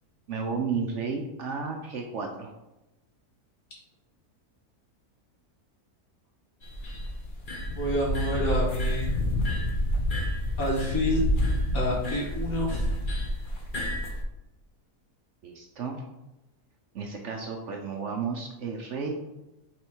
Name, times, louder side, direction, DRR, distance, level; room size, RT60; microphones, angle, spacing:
voice 1, 0.3-2.5 15.4-16.0 16.9-19.1, right 5 dB, 60° right, 2 dB, 0.8 m, -33 dB
sound 1, 6.6-14.2, left 1 dB, 40° left, 0.9 m, -29 dB
voice 2, 7.7-9.1 10.6-11.2 11.7-12.8, equal, 65° left, -4 dB, 2.3 m, -28 dB
5.0 x 4.2 x 4.5 m, 0.97 s
omnidirectional pair, 1.6 m